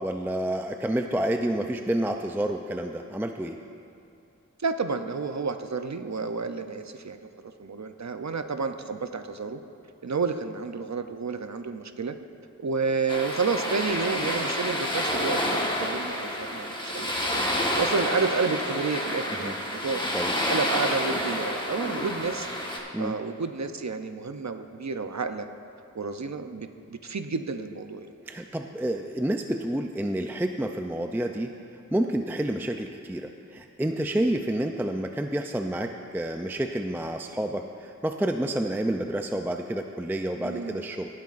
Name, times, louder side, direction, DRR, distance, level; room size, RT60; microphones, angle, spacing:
voice 1, 0.0-3.6 19.3-19.6 20.1-20.4 22.9-23.1 28.3-31.5 31.9-41.1, right 1 dB, 5° right, 5 dB, 0.4 m, -29 dB
voice 2, 4.6-9.6 10.0-12.2 12.6-17.4 17.8-20.0 20.5-22.5 22.7-25.5 25.9-28.1 34.1-34.4 40.4-40.8, right 4 dB, 60° right, 8 dB, 0.6 m, -30 dB
sound 1, 13.1-22.8, left 1 dB, 15° left, 1.4 m, -29 dB
18.0 x 9.4 x 2.5 m, 2.6 s
wide cardioid pair, 40°, 32 cm